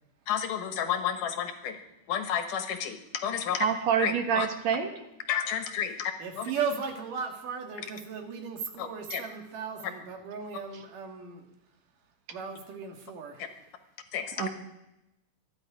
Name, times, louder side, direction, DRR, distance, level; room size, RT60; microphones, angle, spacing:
voice 1, 0.3-1.8 2.1-3.7 4.0-4.5 5.3-6.5 8.8-9.2 14.1-14.5, left 9 dB, 80° left, 7 dB, 2.9 m, -31 dB
voice 2, 3.5-4.9 14.4-14.5, right 7 dB, 65° right, 6 dB, 2.3 m, -27 dB
voice 3, 6.2-11.5 12.3-13.5, right 5 dB, 80° right, 3 dB, 3.5 m, -36 dB
25.5 x 10.5 x 5.0 m, 0.91 s
omnidirectional pair, 3.7 m